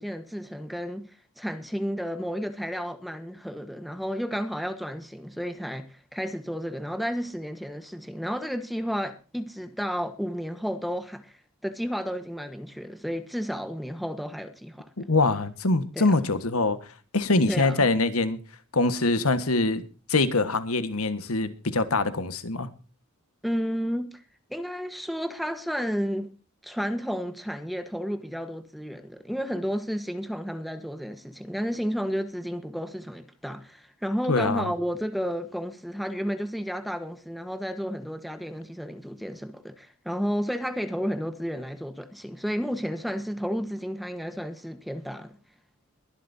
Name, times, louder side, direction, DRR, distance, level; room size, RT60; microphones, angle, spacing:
voice 1, 0.0-11.3 11.6-15.1 15.9-16.1 17.5-17.9 23.4-24.2 24.5-26.3 26.6-45.3, equal, ahead, 1.2 m, -32 dB
voice 2, 15.0-16.8 17.1-18.4 18.7-19.8 20.1-22.7 34.3-34.7, left 3 dB, 80° left, 1.5 m, -24 dB
22.5 x 11.5 x 2.7 m
head